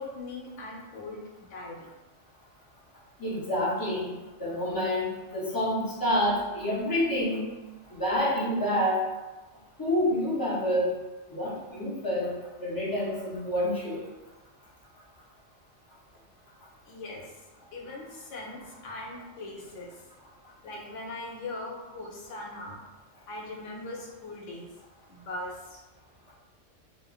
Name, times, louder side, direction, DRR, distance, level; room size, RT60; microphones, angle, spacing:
voice 1, 0.0-1.9 16.8-17.4 17.7-20.1 20.6-22.8 23.3-24.7 25.1-25.8, left 2 dB, 75° left, -1 dB, 0.9 m, -40 dB
voice 2, 3.2-4.1 4.4-7.4 7.9-9.0 9.8-10.9 11.3-12.3 12.6-14.0, left 1 dB, 30° left, -7 dB, 0.4 m, -28 dB
3.1 x 2.1 x 2.3 m, 1.1 s
omnidirectional pair, 1.3 m